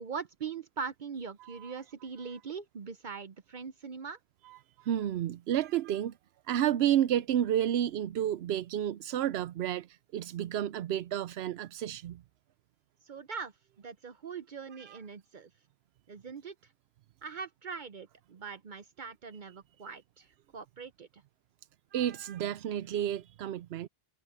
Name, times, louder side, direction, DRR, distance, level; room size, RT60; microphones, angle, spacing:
voice 1, 0.0-4.2 13.1-13.5 13.8-15.5 16.1-16.5 17.2-20.3 20.5-21.1, right 5 dB, 55° right, 0.8 m, -41 dB
voice 2, 1.4-1.8 2.2-2.3 4.4-6.1 6.5-12.2 14.7-15.0 21.9-23.9, right 11 dB, 90° right, 0.8 m, -31 dB
omnidirectional pair, 1.0 m